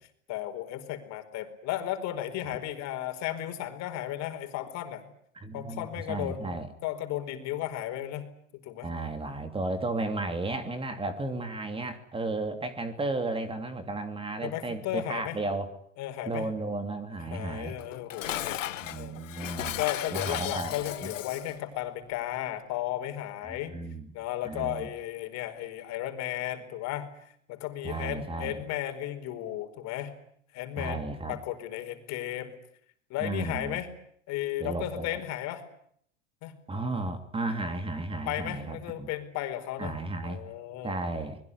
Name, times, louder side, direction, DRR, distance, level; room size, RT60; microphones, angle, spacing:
voice 1, 0.3-5.1 5.5-8.3 8.5-8.9 14.4-15.4 16.0-16.5 17.3-23.8 24.1-30.1 30.5-32.5 33.1-33.9 34.3-35.6 36.4-36.6 38.3-40.0 40.2-41.0, left 13 dB, 45° left, 7 dB, 4.7 m, -35 dB
voice 2, 5.3-6.7 8.8-15.7 16.3-17.8 18.8-19.8 20.1-20.7 21.0-21.1 23.4-24.1 24.4-24.9 27.8-28.6 30.8-31.4 33.2-33.8 34.6-35.2 36.7-39.1 39.8-40.4 40.8-41.4, right 2 dB, 15° right, 9 dB, 2.8 m, -34 dB
Dishes pots and pans, 17.8-21.6, left 12 dB, 90° left, 1.1 m, -35 dB
25.0 x 21.5 x 9.8 m, 0.66 s
hypercardioid pair, 110°, 37 cm